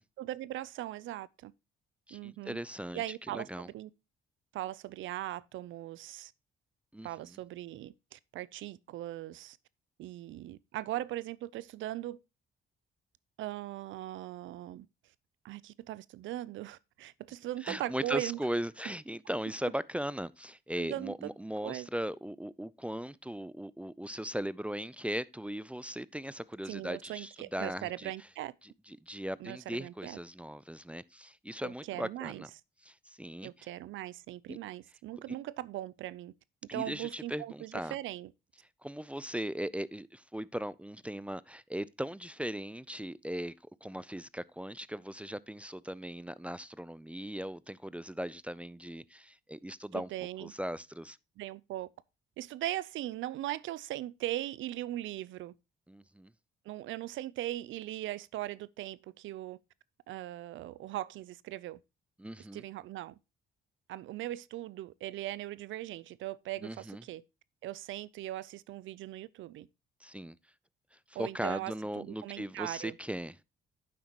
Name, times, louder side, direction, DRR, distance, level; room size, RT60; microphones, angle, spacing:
voice 1, 0.2-1.5 2.1-2.6 2.9-3.9 4.5-6.3 7.0-9.6 10.0-12.2 13.4-14.9 15.4-18.4 20.8-21.3 21.6-21.9 26.7-28.5 29.4-30.2 31.6-32.4 33.4-36.3 36.7-38.3 49.9-50.5 51.4-51.9 52.4-55.5 56.7-59.6 60.1-61.8 62.5-63.1 63.9-67.2 67.6-69.7 71.1-73.0, right 14 dB, 80° right, 0.5 m, -39 dB
voice 2, 2.1-3.7 6.9-7.4 17.6-28.1 28.6-32.5 32.8-33.7 34.5-34.6 36.7-38.0 38.8-43.5 43.8-50.1 50.4-51.2 55.9-56.3 62.2-62.6 66.6-67.0 70.0-70.4 71.1-73.3, equal, 5° right, 0.4 m, -38 dB
9.4 x 7.5 x 2.9 m
cardioid pair, 90°, 20 cm